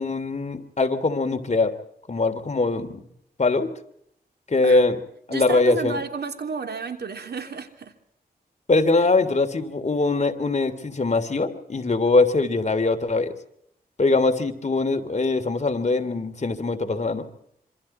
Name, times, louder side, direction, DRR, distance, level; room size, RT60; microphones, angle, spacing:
voice 1, 0.0-1.7 2.1-3.0 3.4-3.7 4.5-5.0 5.3-6.0 8.7-13.3 14.0-17.2, left 3 dB, 45° left, 6 dB, 3.0 m, -22 dB
voice 2, 5.3-7.9, right 5 dB, 75° right, 6 dB, 3.2 m, -31 dB
26.5 x 26.0 x 4.4 m, 0.70 s
cardioid pair, 75°, 17 cm